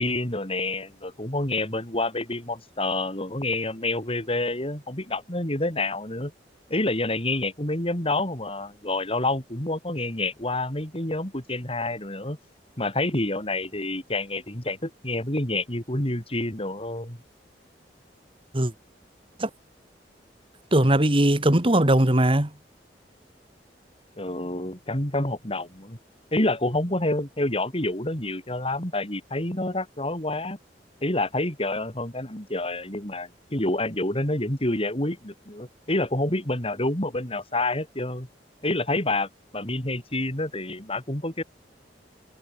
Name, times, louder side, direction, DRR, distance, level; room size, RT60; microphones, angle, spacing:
voice 1, 0.0-6.3 6.7-12.4 12.8-17.2 24.2-26.0 26.3-30.6 31.0-38.3 38.6-41.4, left 2 dB, 35° left, 6.5 m, -28 dB
voice 2, 20.7-22.5, right 1 dB, 30° right, 2.1 m, -19 dB
head